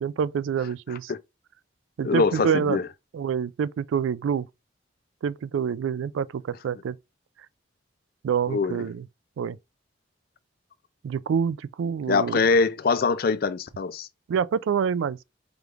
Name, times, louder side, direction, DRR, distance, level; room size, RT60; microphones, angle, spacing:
voice 1, 0.0-1.1 2.0-2.8 3.1-4.5 5.2-7.0 8.2-9.0 9.4-9.6 11.0-12.4 14.3-15.2, right 7 dB, 90° right, 0.3 m, -27 dB
voice 2, 2.0-2.9 8.5-8.8 12.1-14.1, left 4 dB, 50° left, 0.4 m, -23 dB
4.9 x 3.2 x 2.4 m
head